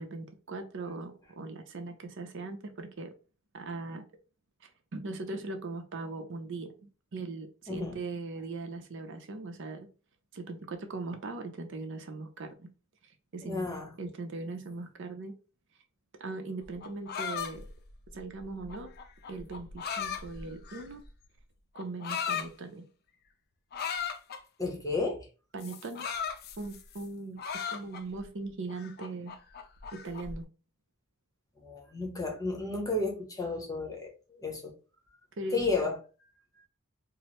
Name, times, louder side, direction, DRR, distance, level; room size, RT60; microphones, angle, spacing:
voice 1, 0.0-3.1 3.5-4.0 4.6-9.9 10.3-12.7 13.3-13.7 14.0-15.4 16.2-17.6 18.1-18.9 19.3-21.0 21.7-22.8 25.5-26.1 26.6-27.4 27.7-29.3 30.0-30.4 35.4-35.6, right 3 dB, 60° right, 0.6 m, -39 dB
voice 2, 13.4-13.9 24.6-25.3 31.6-34.7 35.5-36.0, left 3 dB, 15° left, 0.9 m, -32 dB
sound 1, 16.6-21.1 21.8-22.5 23.7-24.4 25.6-27.0 27.4-28.2 28.7-30.4, left 7 dB, 50° left, 0.4 m, -37 dB
4.7 x 2.0 x 3.0 m
head